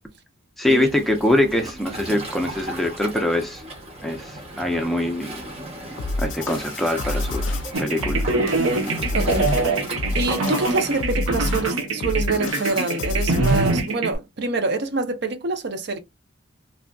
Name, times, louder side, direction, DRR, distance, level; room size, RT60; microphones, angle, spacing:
voice 1, 0.6-3.6 4.0-5.3 6.2-8.2, left 1 dB, ahead, 0.4 m, -23 dB
Waves surf, 0.6-11.0, right 1 dB, 30° right, 0.9 m, -36 dB
sound 1, 6.0-13.9, left 2 dB, 60° left, 0.4 m, -28 dB
sound 2, 7.7-14.1, right 3 dB, 85° right, 0.9 m, -24 dB
voice 2, 9.1-9.8 10.1-16.0, right 3 dB, 50° right, 0.5 m, -26 dB
3.3 x 2.5 x 2.2 m
head